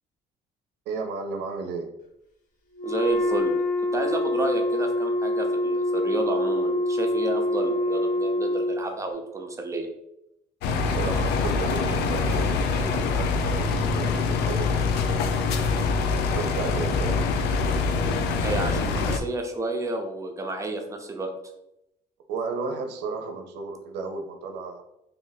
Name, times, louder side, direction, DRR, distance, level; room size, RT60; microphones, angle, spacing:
voice 1, 0.9-1.9 10.8-15.5 16.2-17.3 22.3-24.8, right 4 dB, 85° right, 5 dB, 0.5 m, -34 dB
Wind instrument woodwind instrument, 2.7-8.9, left 1 dB, 50° left, 0.9 m, -25 dB
voice 2, 2.8-3.6 3.9-9.9 18.4-21.3, right 2 dB, 20° right, 3 dB, 0.6 m, -31 dB
sound 1, 10.6-19.2, left 4 dB, 80° left, 0.4 m, -24 dB
2.7 x 2.6 x 3.9 m, 0.84 s
cardioid pair, 110°, 17 cm